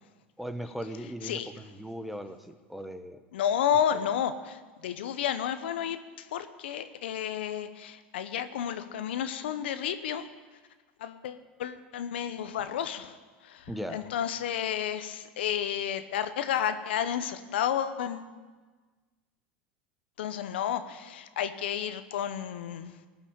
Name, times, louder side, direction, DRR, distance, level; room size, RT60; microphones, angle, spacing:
voice 1, 0.4-3.2 13.7-14.0, equal, ahead, 9 dB, 1.0 m, -38 dB
voice 2, 3.3-10.2 11.0-13.2 13.4-18.3 20.2-22.9, left 9 dB, 80° left, 10 dB, 0.9 m, -31 dB
18.5 x 6.2 x 8.7 m, 1.4 s
hypercardioid pair, 95°, 6 cm